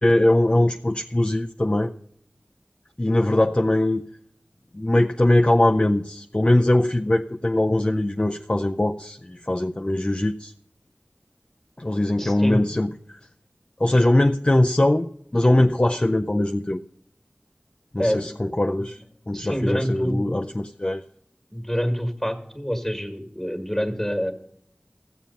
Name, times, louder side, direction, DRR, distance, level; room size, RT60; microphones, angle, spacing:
voice 1, 0.0-1.9 3.0-4.0 4.7-10.5 11.8-13.2 13.8-16.8 17.9-21.0, left 1 dB, 30° left, 5 dB, 0.5 m, -21 dB
voice 2, 12.2-12.6 18.0-18.4 18.8-18.9 19.3-20.3 21.5-24.3, equal, 5° left, 7 dB, 1.8 m, -26 dB
14.5 x 7.4 x 5.5 m, 0.70 s
wide cardioid pair, 50°, 4 cm